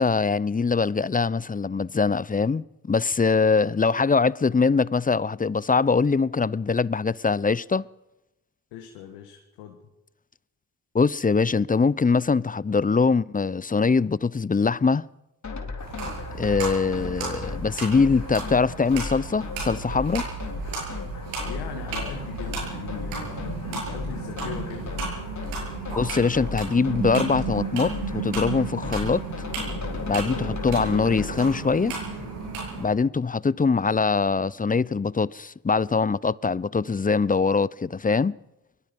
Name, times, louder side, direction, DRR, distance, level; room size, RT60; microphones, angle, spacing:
voice 1, 0.0-7.9 10.9-15.1 16.3-20.3 26.0-29.2 30.1-31.9 32.8-38.4, left 4 dB, 20° left, 0.7 m, -23 dB
voice 2, 8.7-9.8 21.4-24.9, left 10 dB, 85° left, 1.9 m, -40 dB
sound 1, 15.4-31.3, left 4 dB, 45° left, 3.8 m, -36 dB
sound 2, 15.8-32.8, right 4 dB, 90° right, 7.9 m, -34 dB
24.5 x 22.0 x 5.4 m
hypercardioid pair, 45°, 40 cm